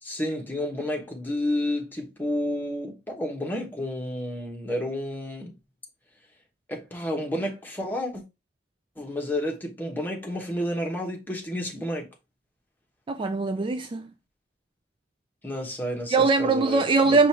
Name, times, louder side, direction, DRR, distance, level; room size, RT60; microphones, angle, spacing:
voice 1, 0.0-5.5 6.7-8.2 9.0-12.1 15.4-17.2, left 1 dB, 10° left, 1.1 m, -30 dB
voice 2, 13.1-14.1 16.1-17.3, right 3 dB, 30° right, 0.3 m, -22 dB
5.1 x 2.4 x 4.3 m
head